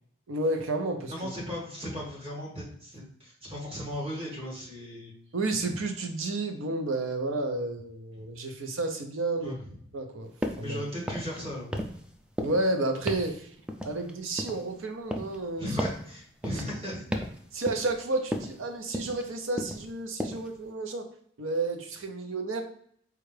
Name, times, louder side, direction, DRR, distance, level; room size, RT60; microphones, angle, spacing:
voice 1, 0.3-1.1 5.3-9.6 9.9-10.8 12.4-13.5 13.8-15.7 17.5-21.1 21.4-22.6, right 2 dB, 85° right, 5 dB, 0.6 m, -31 dB
voice 2, 1.1-5.1 9.4-9.7 10.6-11.7 15.6-17.0, equal, 30° right, -4 dB, 1.6 m, -36 dB
sound 1, 10.4-10.7 11.0-11.4 11.7-12.1 12.4-12.7 13.1-13.3 13.7-14.7 15.1-15.4 15.8-16.0 16.4-16.7 17.1-17.4 17.7-18.0 18.3-18.6 18.9-19.3 19.6-19.9 20.2-20.5, equal, 5° right, 0.3 m, -34 dB
4.3 x 2.4 x 3.3 m, 0.64 s
head